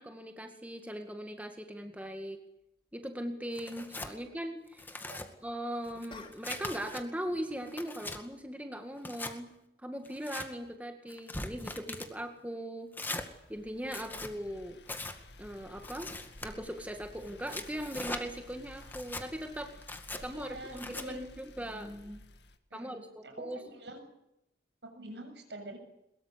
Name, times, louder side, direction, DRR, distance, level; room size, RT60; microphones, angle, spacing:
voice 1, 0.0-2.4 2.9-4.8 5.4-9.5 9.8-12.9 13.5-14.8 15.4-16.1 16.4-19.7 20.2-22.2 22.7-23.6, equal, 10° right, 5 dB, 2.0 m, -39 dB
sound 1, 2.0-2.2 6.1-7.0 7.2-7.6, left 3 dB, 30° left, 2.8 m, -51 dB
Tearing, 3.5-4.1 4.7-5.3 5.8-7.0 7.5-8.2 9.0-9.3 10.0-10.5 11.1-12.1 12.9-13.3 13.8-14.3 14.9-15.2 15.8-16.5 17.2-18.2 18.8-19.3 19.8-20.2 20.8-21.1, left 2 dB, 10° left, 2.0 m, -41 dB
sound 2, 13.2-22.6, left 2 dB, 75° left, 2.2 m, -53 dB
voice 2, 20.2-21.2 22.7-24.0 24.8-25.8, right 1 dB, 80° right, 7 dB, 7.4 m, -46 dB
23.0 x 22.0 x 8.4 m, 0.84 s
head